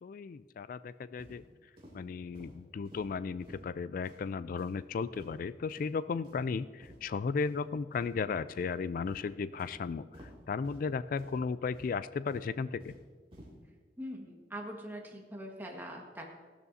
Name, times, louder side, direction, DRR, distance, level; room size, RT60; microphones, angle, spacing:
voice 1, 0.0-1.4 1.9-13.0, left 5 dB, 50° left, 15 dB, 0.3 m, -35 dB
sound 1, 1.2-1.4 1.8-1.9 2.3-2.5 2.9-3.0 3.4-3.6 4.0-4.2 4.6-4.8 5.1-5.4 5.7-5.9 6.2-6.4 6.8-7.0 7.4-7.5 7.9-8.1 8.5-8.7 9.1-9.2 9.6-9.7 10.1-10.3 10.6-10.8 11.2-11.4 11.7-11.9 12.3-13.0 13.3-13.5, equal, 30° right, 2.9 m, -53 dB
voice 2, 14.0-16.2, equal, 10° right, 0 dB, 1.6 m, -42 dB
16.0 x 12.5 x 2.7 m, 1.5 s
head